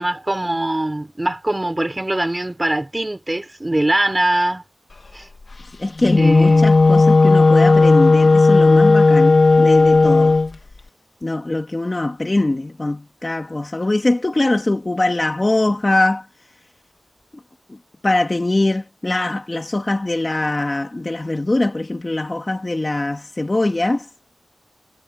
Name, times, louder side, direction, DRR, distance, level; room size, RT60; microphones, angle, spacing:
voice 1, 0.0-4.6 5.1-5.3 6.2-6.6, right 1 dB, 20° right, 5.0 m, -22 dB
voice 2, 5.8-10.4 11.2-16.3 17.7-17.8 18.0-24.1, left 2 dB, 30° left, 2.3 m, -22 dB
Wind instrument woodwind instrument, 6.0-10.5, left 3 dB, 45° left, 2.4 m, -13 dB
wide cardioid pair, 95°, 0 cm